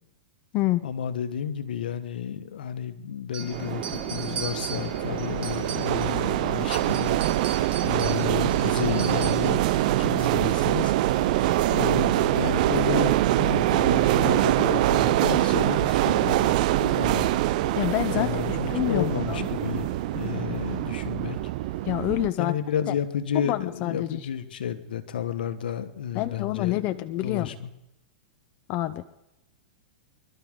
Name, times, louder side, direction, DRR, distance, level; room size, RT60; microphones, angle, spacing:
voice 1, 0.8-7.2 7.8-10.9 11.7-17.3 18.1-19.9 20.1-21.4 22.4-27.7, left 9 dB, 80° left, 10 dB, 1.5 m, -31 dB
sound 1, 3.3-6.2 6.6-9.6, right 6 dB, 25° right, 2.3 m, -38 dB
sound 2, 3.4-22.5, left 5 dB, 20° left, 1.2 m, -42 dB
sound 3, 3.5-22.3, right 16 dB, 55° right, 0.5 m, -24 dB
voice 2, 17.8-19.5 21.8-22.5 22.9-23.0 23.3-24.2 26.1-27.5 28.7-29.0, left 16 dB, 40° left, 11 dB, 0.6 m, -27 dB
26.5 x 12.5 x 3.8 m, 0.88 s
hypercardioid pair, 135°, 5 cm